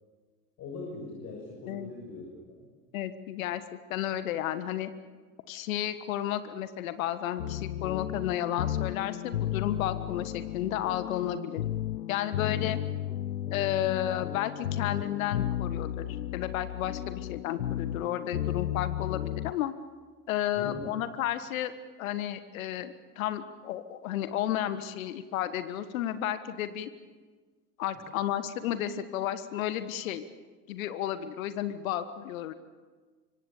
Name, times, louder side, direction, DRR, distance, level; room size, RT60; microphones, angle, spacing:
voice 1, 0.6-2.7 12.4-12.7 20.6-20.8, left 3 dB, 35° left, -2 dB, 6.8 m, -41 dB
voice 2, 2.9-3.6 3.9-4.9 5.5-11.6 12.1-12.8 13.5-16.1 16.3-19.7 20.3-21.7 22.0-26.9 27.8-30.2 30.7-32.5, left 12 dB, 55° left, 12 dB, 1.6 m, -32 dB
sound 1, 7.4-19.5, left 11 dB, 75° left, 0.7 m, -34 dB
26.0 x 24.5 x 7.1 m, 1.4 s
figure-of-eight pair, 80°, 47 cm